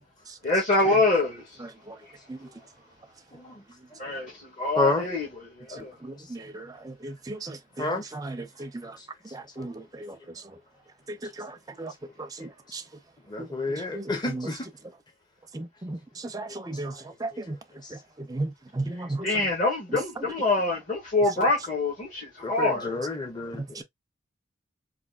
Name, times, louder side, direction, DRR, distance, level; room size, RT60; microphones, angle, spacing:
voice 1, 0.4-1.4 4.0-4.3 4.6-5.9 19.2-23.0, left 2 dB, 45° left, 1.7 m, -25 dB
voice 2, 4.8-5.1 7.8-8.0 13.3-14.6 22.4-23.6, left 2 dB, 20° left, 0.8 m, -28 dB
voice 3, 6.0-8.9 9.3-10.1 11.4-11.5 11.8-11.9 12.4-12.8 13.4-13.5 13.9-14.5 15.5-16.0 16.3-16.9 17.2-17.6 18.3-19.4 19.9-20.3 23.8-23.9, right 2 dB, 20° right, 0.5 m, -35 dB
4.1 x 2.7 x 2.4 m
head